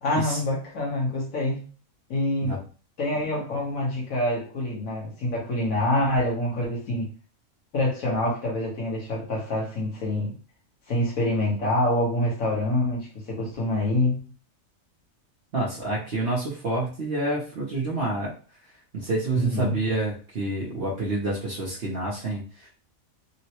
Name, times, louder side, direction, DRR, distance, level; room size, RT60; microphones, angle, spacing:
voice 1, 0.0-1.6 2.1-2.6 3.0-7.1 7.7-10.3 10.9-14.2 19.3-19.8, left 1 dB, 80° left, -4 dB, 1.6 m, -26 dB
voice 2, 15.5-18.3 18.9-22.7, right 2 dB, 55° right, -5 dB, 0.9 m, -28 dB
3.8 x 2.1 x 2.9 m, 0.38 s
omnidirectional pair, 1.4 m